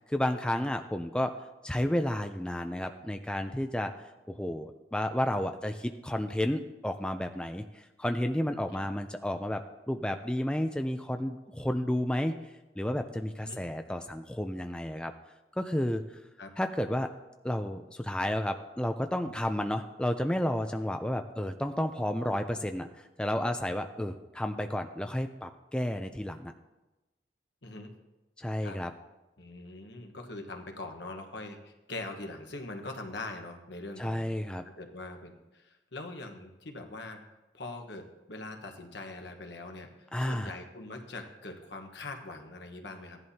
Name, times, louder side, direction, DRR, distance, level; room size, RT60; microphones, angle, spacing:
voice 1, 0.0-1.3 1.6-3.9 4.3-12.3 12.8-15.1 15.6-16.0 16.6-17.1 17.4-22.9 23.2-26.5 28.4-28.9 34.0-34.6 40.1-40.5, left 1 dB, 5° left, 6 dB, 0.4 m, -31 dB
voice 2, 29.4-34.2 34.8-37.2 37.5-39.9 40.2-43.2, left 2 dB, 75° left, 4 dB, 1.3 m, -42 dB
15.5 x 10.5 x 2.8 m, 1.1 s
head